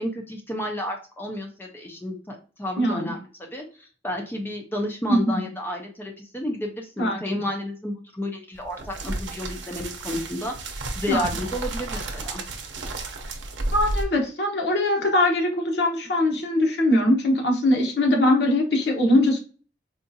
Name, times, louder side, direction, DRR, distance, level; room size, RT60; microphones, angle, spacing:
voice 1, 0.0-3.2 3.5-12.4, left 1 dB, 10° left, 1 dB, 0.4 m, -31 dB
voice 2, 2.8-3.1 5.1-5.5 7.0-7.2 11.1-11.4 13.7-19.4, left 1 dB, 70° left, 2 dB, 0.9 m, -21 dB
sound 1, 8.5-14.0, right 2 dB, 90° right, 0.6 m, -32 dB
3.7 x 2.3 x 2.6 m, 0.38 s
head